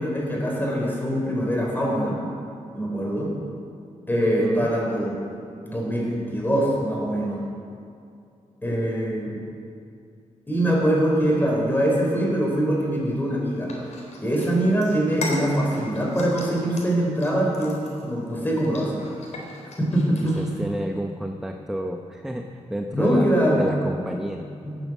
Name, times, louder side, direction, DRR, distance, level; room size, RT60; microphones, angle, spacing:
voice 1, 0.0-2.2 2.7-3.3 4.1-5.1 5.6-7.4 8.6-9.4 10.5-13.7 14.2-19.0 19.8-20.4 22.9-23.7 24.6-24.9, right 1 dB, 15° left, -2 dB, 4.7 m, -23 dB
voice 2, 4.2-4.7 20.2-23.3 23.5-24.4, equal, 5° right, 3 dB, 0.8 m, -30 dB
sound 1, 13.7-20.5, left 2 dB, 65° left, 4.0 m, -38 dB
19.0 x 9.1 x 7.4 m, 2.5 s
wide cardioid pair, 110°, 13 cm